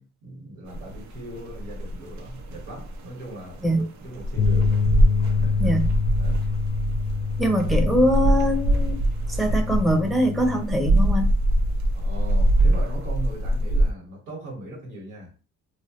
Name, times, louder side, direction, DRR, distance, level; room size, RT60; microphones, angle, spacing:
voice 1, 0.0-4.8 5.3-5.7 6.2-6.4 11.9-15.3, right 1 dB, 85° right, 1.4 m, -39 dB
sound 1, 0.7-13.9, right 1 dB, 65° right, 0.6 m, -24 dB
sound 2, 4.4-10.6, left 6 dB, 70° left, 0.4 m, -27 dB
voice 2, 7.4-9.0 9.3-11.3, equal, ahead, 0.5 m, -22 dB
3.0 x 2.2 x 2.9 m
cardioid pair, 90°, 30 cm